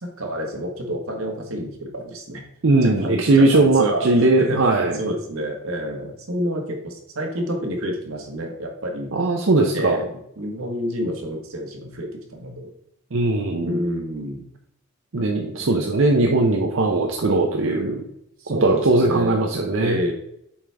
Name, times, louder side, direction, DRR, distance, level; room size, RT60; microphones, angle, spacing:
voice 1, 0.0-2.4 2.8-9.2 9.7-12.7 13.6-14.4 18.4-19.4 19.8-20.1, equal, 90° right, 2 dB, 1.6 m, -29 dB
voice 2, 2.6-5.0 9.1-10.0 13.1-13.8 15.1-18.0 18.6-20.0, right 2 dB, 70° right, 2 dB, 0.7 m, -19 dB
7.2 x 5.0 x 3.4 m, 0.76 s
head